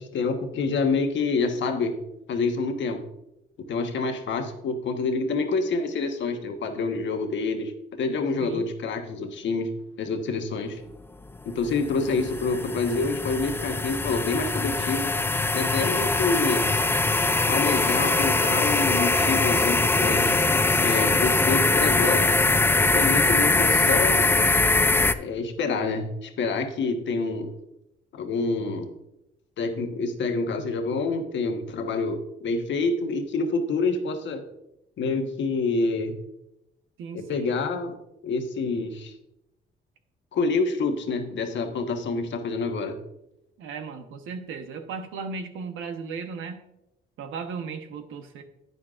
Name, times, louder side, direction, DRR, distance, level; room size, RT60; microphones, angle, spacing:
voice 1, 0.0-1.9 2.3-3.0 3.7-7.7 8.0-9.7 10.0-10.8 11.4-15.1 15.5-16.7 17.5-20.4 20.8-22.3 22.9-24.2 25.1-27.5 28.1-28.9 29.6-34.4 35.0-36.1 37.1-37.9 38.2-39.1 40.3-43.0, left 4 dB, 70° left, 5 dB, 1.3 m, -27 dB
sound 1, 11.3-25.1, left 3 dB, 10° left, 0.4 m, -22 dB
voice 2, 37.0-37.5 43.6-46.6 47.2-48.4, right 5 dB, 85° right, 7 dB, 1.1 m, -36 dB
10.5 x 9.2 x 2.5 m, 0.87 s
cardioid pair, 90°, 20 cm